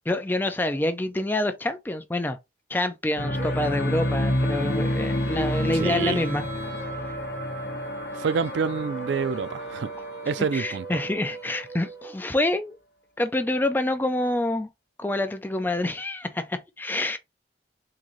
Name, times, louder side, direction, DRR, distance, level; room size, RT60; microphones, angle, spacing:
voice 1, 0.1-2.4 2.7-6.4 10.5-12.8 13.2-14.7 15.0-17.2, left 1 dB, 10° left, 0.4 m, -27 dB
sound 1, 3.2-11.4, equal, 60° left, 0.7 m, -29 dB
Female singing, 3.4-12.2, equal, 20° right, 1.2 m, -41 dB
voice 2, 5.7-6.2 8.1-9.9 10.3-11.0, right 5 dB, 85° right, 0.4 m, -27 dB
3.8 x 2.6 x 3.0 m
head